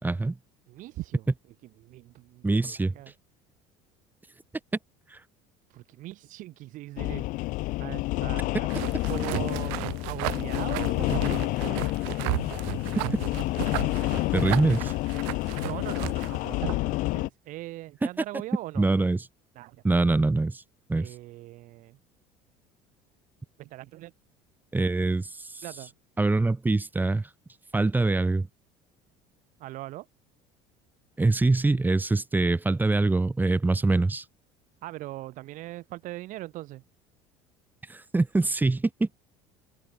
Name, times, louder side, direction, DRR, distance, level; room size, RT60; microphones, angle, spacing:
voice 1, 0.0-0.4 2.4-2.9 5.1-5.2 14.3-14.9 18.8-19.2 19.8-20.6 20.9-21.1 24.7-25.6 26.2-27.3 27.7-28.5 31.2-34.2 37.9-39.1, right 3 dB, 10° right, 1.4 m, -24 dB
voice 2, 0.7-1.3 1.8-3.1 5.7-7.3 7.8-12.0 15.6-18.9 19.6-19.8 21.0-22.0 23.6-24.1 25.6-25.9 29.6-30.1 34.8-36.8, right 17 dB, 65° right, 5.3 m, -40 dB
sound 1, 7.0-17.3, left 20 dB, 65° left, 0.8 m, -29 dB
sound 2, 8.7-16.9, right 40 dB or more, 80° right, 1.2 m, -34 dB
open air
supercardioid pair, 100°, 15 cm